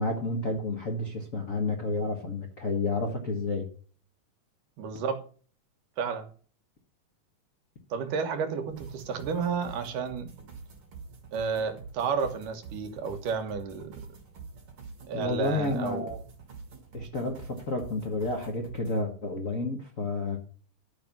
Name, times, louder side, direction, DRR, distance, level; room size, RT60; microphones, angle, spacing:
voice 1, 0.0-3.7 15.1-16.2 16.9-20.4, left 2 dB, 60° left, 0.8 m, -30 dB
voice 2, 4.8-5.3 6.0-6.3 7.9-10.3 11.3-14.1 15.0-16.1, right 6 dB, 80° right, 2.8 m, -31 dB
sound 1, 8.7-19.0, right 4 dB, 45° right, 2.9 m, -46 dB
11.5 x 5.4 x 6.0 m
omnidirectional pair, 3.7 m